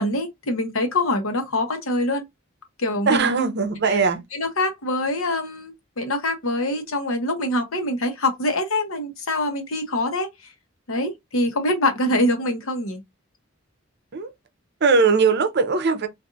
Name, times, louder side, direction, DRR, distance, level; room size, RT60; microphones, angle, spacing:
voice 1, 0.0-2.2 2.8-3.3 4.3-10.5 10.9-13.0, left 1 dB, 85° left, 1.0 m, -24 dB
voice 2, 3.1-4.2 14.1-14.3 14.8-16.1, right 4 dB, 55° right, 0.6 m, -20 dB
2.5 x 2.5 x 3.8 m
head